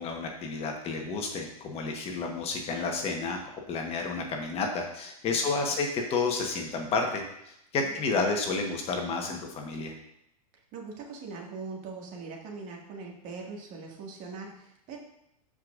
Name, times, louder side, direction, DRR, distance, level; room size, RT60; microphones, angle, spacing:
voice 1, 0.0-9.9, left 4 dB, 30° left, 2 dB, 1.3 m, -31 dB
voice 2, 5.3-5.8 7.8-8.0 10.7-15.0, right 4 dB, 40° right, 0 dB, 2.1 m, -42 dB
13.5 x 5.1 x 2.6 m, 0.80 s
hypercardioid pair, 105°, 20 cm